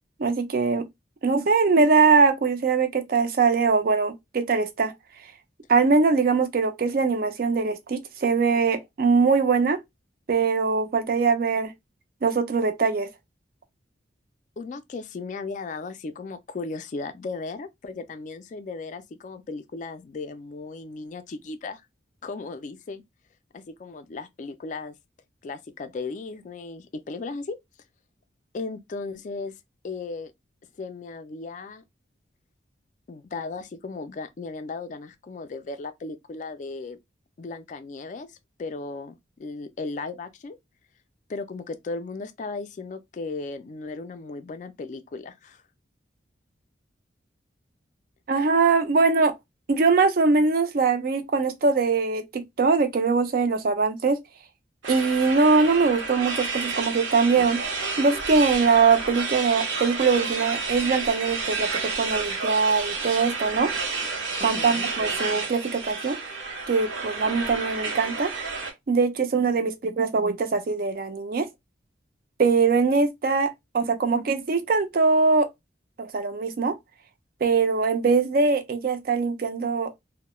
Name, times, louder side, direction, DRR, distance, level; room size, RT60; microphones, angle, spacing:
voice 1, 0.2-0.9 1.2-4.9 5.7-9.8 10.3-11.7 12.2-13.1 48.3-49.3 49.7-54.2 54.9-57.6 58.0-63.7 64.4-66.2 66.7-68.3 68.9-71.5 72.4-75.5 76.0-76.8 77.4-79.9, right 4 dB, 50° right, 0.4 m, -22 dB
voice 2, 14.6-21.8 22.2-23.0 23.5-25.0 25.4-27.6 28.5-29.5 29.8-30.3 30.8-31.8 33.1-37.0 37.4-40.6 41.3-45.6 64.4-64.9, left 3 dB, 40° left, 0.3 m, -36 dB
sound 1, 54.8-68.7, right 4 dB, 90° right, 0.8 m, -30 dB
2.2 x 2.0 x 2.9 m
head